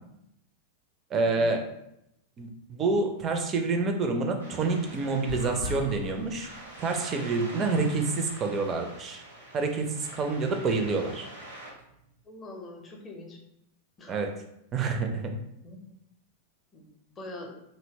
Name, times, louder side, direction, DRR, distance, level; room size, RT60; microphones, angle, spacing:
voice 1, 1.1-1.7 2.4-6.5 6.8-9.2 9.5-11.3 14.1-14.3 14.7-15.3, right 3 dB, 25° right, 4 dB, 0.4 m, -28 dB
sound 1, 4.4-11.7, right 1 dB, 75° right, 0.8 m, -45 dB
sound 2, 4.8-12.1, left 2 dB, 70° left, 0.5 m, -43 dB
voice 2, 12.3-13.4 14.0-14.2 15.6-15.8 16.7-16.8 17.2-17.5, left 2 dB, 20° left, 0 dB, 0.6 m, -43 dB
2.7 x 2.0 x 2.7 m, 0.80 s
figure-of-eight pair, 90°, 0 cm